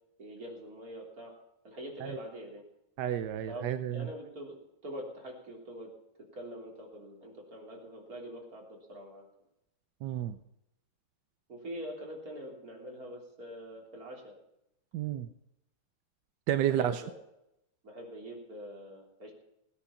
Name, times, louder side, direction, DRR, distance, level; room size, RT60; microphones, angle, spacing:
voice 1, 0.2-1.3 1.6-2.6 3.5-4.6 4.8-5.9 6.3-9.2 11.5-14.3 16.7-17.1 17.8-19.3, equal, 40° right, -1 dB, 3.8 m, -44 dB
voice 2, 3.0-4.1 10.0-10.4 14.9-15.3 16.5-17.0, right 11 dB, 70° right, 10 dB, 1.1 m, -31 dB
17.5 x 10.0 x 5.7 m, 0.83 s
omnidirectional pair, 2.4 m